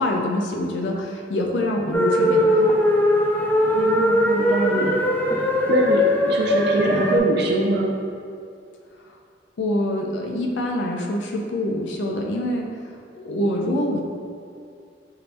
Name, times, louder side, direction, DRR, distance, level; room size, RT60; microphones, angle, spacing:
voice 1, 0.0-2.8 9.6-12.8 13.1-14.0, left 1 dB, 85° left, 1 dB, 0.5 m, -25 dB
sound 1, 1.9-7.2, left 1 dB, 10° left, 0.4 m, -20 dB
voice 2, 3.7-5.0 5.3-5.4 5.7-8.0, right 2 dB, 65° right, -1 dB, 0.4 m, -23 dB
5.4 x 2.6 x 3.3 m, 2.4 s
head